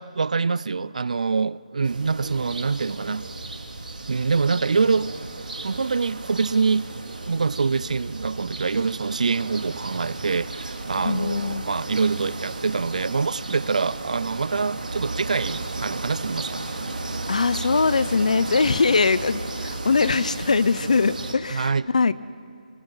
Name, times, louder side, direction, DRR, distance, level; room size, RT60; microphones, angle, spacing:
voice 1, 0.0-3.3 4.1-5.1 5.6-6.9 7.3-16.6 21.5-21.9, right 4 dB, 60° right, 0.4 m, -25 dB
sound 1, 1.8-21.3, right 2 dB, 75° right, 3.0 m, -34 dB
voice 2, 11.0-11.7 17.3-22.1, left 4 dB, 55° left, 0.7 m, -22 dB
25.5 x 24.5 x 5.6 m
hypercardioid pair, 170°, 5 cm